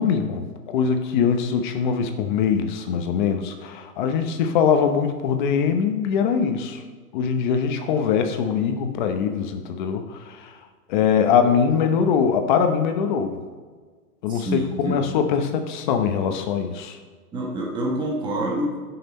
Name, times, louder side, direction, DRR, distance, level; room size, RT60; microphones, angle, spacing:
voice 1, 0.0-6.8 7.1-10.6 10.9-13.4 14.2-17.0, left 7 dB, 30° left, 6 dB, 0.8 m, -22 dB
voice 2, 14.3-15.0 17.3-18.8, right 1 dB, 10° right, -2 dB, 1.2 m, -27 dB
16.5 x 6.0 x 4.2 m, 1.5 s
hypercardioid pair, 155°, 47 cm